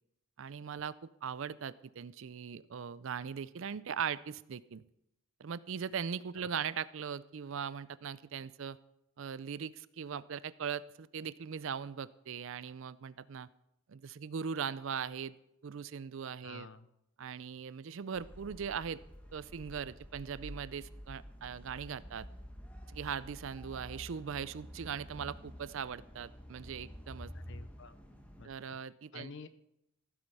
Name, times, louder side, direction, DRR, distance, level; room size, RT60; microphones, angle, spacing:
voice 1, 0.4-4.8 5.4-8.8 9.2-13.5 13.9-15.3 15.6-16.7 17.2-19.0 19.3-22.3 22.9-27.3 28.4-29.3, right 7 dB, 60° right, 18 dB, 0.4 m, -40 dB
voice 2, 16.4-16.9 27.3-27.9 28.4-28.8 29.1-29.5, left 4 dB, 55° left, 13 dB, 0.7 m, -50 dB
sound 1, 18.1-28.5, equal, 5° left, 1.1 m, -50 dB
15.0 x 7.9 x 5.5 m, 0.82 s
head